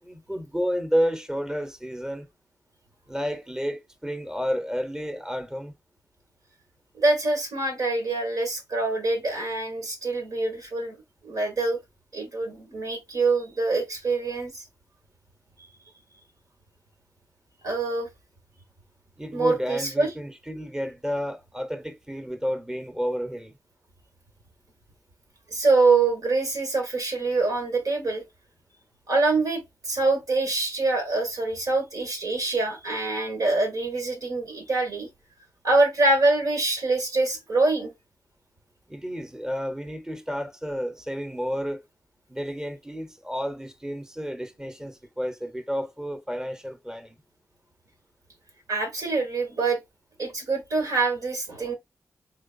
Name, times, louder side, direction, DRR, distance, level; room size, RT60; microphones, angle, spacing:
voice 1, 0.0-2.3 3.1-5.7 19.2-23.6 38.9-41.8 42.3-47.2, equal, 10° right, 0.9 m, -31 dB
voice 2, 6.9-11.0 11.2-11.8 12.1-14.6 17.6-18.1 19.3-20.1 25.5-28.2 29.1-35.1 35.6-37.9 48.7-49.8 50.2-51.7, right 3 dB, 75° right, 1.8 m, -25 dB
3.9 x 3.2 x 2.5 m
cardioid pair, 45°, 6 cm